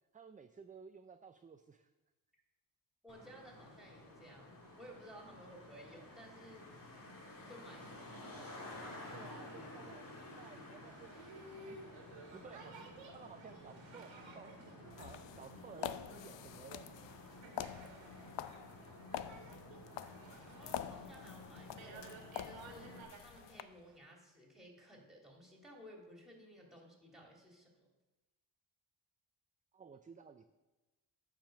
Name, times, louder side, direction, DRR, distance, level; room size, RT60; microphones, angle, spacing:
voice 1, 0.1-1.9 8.9-11.1 11.5-14.6 14.9-17.2 29.7-30.4, right 5 dB, 20° right, 8 dB, 0.4 m, -56 dB
voice 2, 3.0-6.8 7.5-8.5 20.5-27.9, equal, ahead, -1 dB, 2.7 m, -56 dB
Traffic noise roadway noise, 3.1-23.0, left 2 dB, 45° left, 2.2 m, -53 dB
Boat Water vehicle, 10.8-24.0, right 3 dB, 85° right, 1.8 m, -56 dB
sound 1, 14.9-23.6, left 11 dB, 70° left, 0.5 m, -47 dB
9.1 x 5.1 x 6.6 m, 1.1 s
cardioid pair, 75°, 45 cm